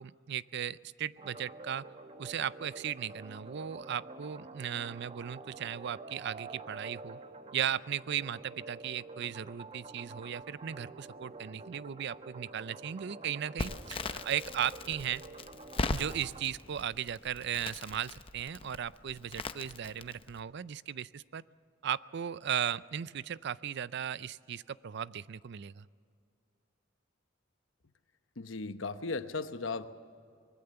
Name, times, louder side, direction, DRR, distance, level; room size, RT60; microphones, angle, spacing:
voice 1, 0.0-1.8 2.2-7.2 7.5-15.2 15.9-21.4 21.8-25.9, right 9 dB, 60° right, 18 dB, 0.4 m, -36 dB
sound 1, 1.2-16.5, right 3 dB, 30° right, 1.0 m, -48 dB
Crackle, 13.6-20.4, left 3 dB, 30° left, 0.7 m, -40 dB
voice 2, 28.4-29.9, left 3 dB, 70° left, 10 dB, 1.0 m, -36 dB
24.0 x 20.5 x 6.9 m, 2.3 s
head